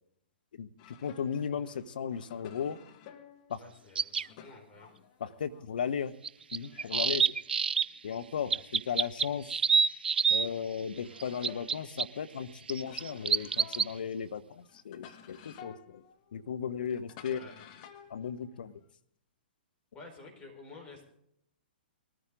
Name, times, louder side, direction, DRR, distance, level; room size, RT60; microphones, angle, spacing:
voice 1, 0.5-2.8 3.5-3.6 5.2-6.1 6.5-7.2 8.0-9.5 10.3-16.0 16.3-17.4 18.1-18.7, left 7 dB, 60° left, 12 dB, 0.9 m, -36 dB
sound 1, 0.8-6.1 6.4-9.7 10.1-18.9, left 9 dB, 40° left, 1.4 m, -55 dB
voice 2, 3.6-4.9 17.3-17.6 19.9-21.1, left 3 dB, 20° left, 0 dB, 4.8 m, -50 dB
sound 2, 4.0-4.3 6.2-7.8 8.5-10.5 11.2-12.0 12.7-13.9, right 6 dB, 70° right, 0.5 m, -27 dB
20.0 x 14.0 x 3.8 m, 0.71 s
figure-of-eight pair, 115°, 6 cm